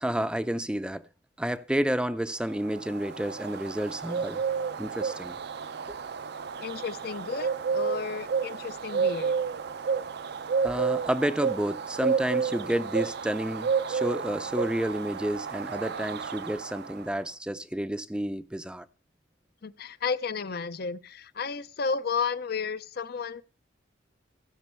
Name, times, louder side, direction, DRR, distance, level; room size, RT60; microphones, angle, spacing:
voice 1, 0.0-1.0 1.4-4.4 4.8-5.4 5.9-6.0 10.6-18.9, right 1 dB, 5° right, 0.5 m, -30 dB
Bird, 2.5-17.2, right 6 dB, 60° right, 0.5 m, -31 dB
voice 2, 6.6-9.4 19.6-23.4, left 5 dB, 55° left, 0.5 m, -32 dB
15.5 x 5.3 x 6.8 m
head